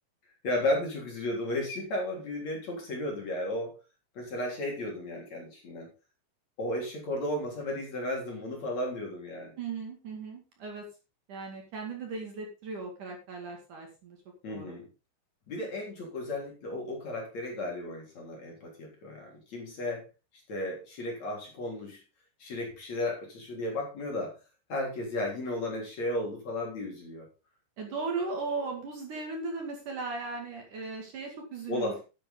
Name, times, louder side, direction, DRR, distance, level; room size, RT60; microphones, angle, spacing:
voice 1, 0.4-3.7 4.2-5.9 6.6-9.6 14.4-14.9 15.5-20.0 20.5-22.0 22.4-24.3 24.7-27.3 31.7-32.0, left 1 dB, 40° left, 0 dB, 4.3 m, -34 dB
voice 2, 9.6-10.9 11.3-14.2 14.5-14.7 27.8-31.9, right 4 dB, 50° right, 2 dB, 3.4 m, -37 dB
11.5 x 10.0 x 3.9 m, 0.30 s
omnidirectional pair, 5.2 m